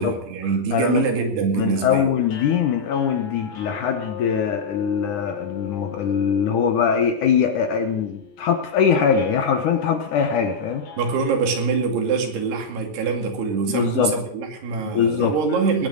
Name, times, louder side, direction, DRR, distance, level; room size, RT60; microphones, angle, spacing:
voice 1, 0.0-2.1 11.0-15.9, right 5 dB, 85° right, 3 dB, 4.4 m, -24 dB
voice 2, 0.7-1.0 1.6-10.9 13.7-14.2 14.9-15.4, left 7 dB, 65° left, 6 dB, 2.1 m, -22 dB
sound 1, 2.2-12.5, left 6 dB, 85° left, 4.7 m, -39 dB
19.5 x 8.8 x 6.5 m, 0.69 s
omnidirectional pair, 4.6 m